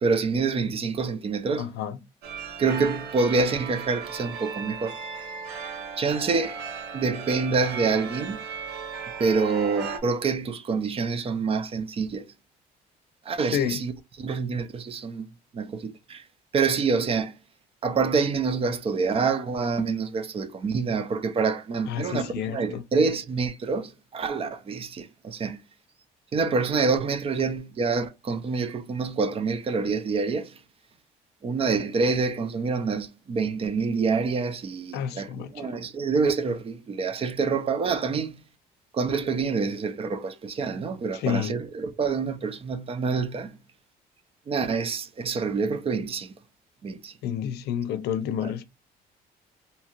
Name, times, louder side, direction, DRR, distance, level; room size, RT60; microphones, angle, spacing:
voice 1, 0.0-1.7 2.6-5.0 6.0-6.6 6.9-8.4 9.2-12.3 13.2-15.3 15.5-16.3 16.5-17.4 17.8-25.6 26.3-30.6 31.4-38.4 38.9-43.6 44.5-46.4 46.8-47.1 48.4-48.5, right 4 dB, 35° right, 0.5 m, -27 dB
voice 2, 1.6-2.0 13.5-13.8 21.9-22.8 34.9-35.7 41.1-41.5 47.2-48.7, left 9 dB, 75° left, 0.5 m, -29 dB
sound 1, 2.2-10.0, right 5 dB, 80° right, 0.8 m, -36 dB
2.8 x 2.3 x 2.9 m
cardioid pair, 110°, 17 cm